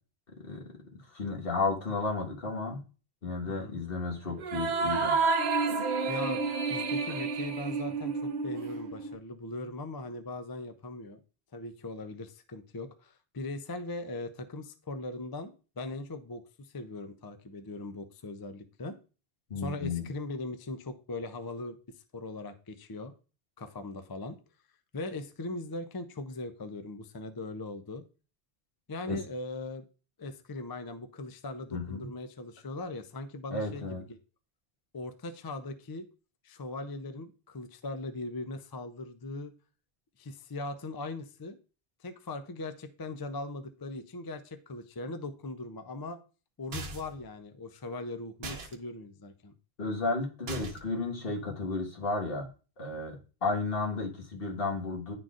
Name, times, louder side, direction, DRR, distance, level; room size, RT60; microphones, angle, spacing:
voice 1, 1.1-2.8 3.2-5.2 5.7-6.0 19.5-20.0 29.1-29.2 31.7-32.1 33.5-34.0 49.8-52.5 52.8-55.1, left 3 dB, 65° left, 0 dB, 1.7 m, -33 dB
sound 1, 4.4-9.2, right 4 dB, 60° right, 0.8 m, -30 dB
voice 2, 6.1-11.2 11.5-19.0 19.6-21.8 22.1-23.1 23.6-24.4 24.9-28.0 28.9-29.8 30.2-34.2 34.9-36.0 36.4-39.5 40.2-41.6 42.0-46.2 46.6-49.5, left 2 dB, 30° left, 9 dB, 0.4 m, -40 dB
sound 2, 46.7-47.2 48.4-48.7 50.5-51.0, right 1 dB, 75° right, 1.1 m, -39 dB
10.5 x 3.9 x 2.4 m, 0.35 s
omnidirectional pair, 1.0 m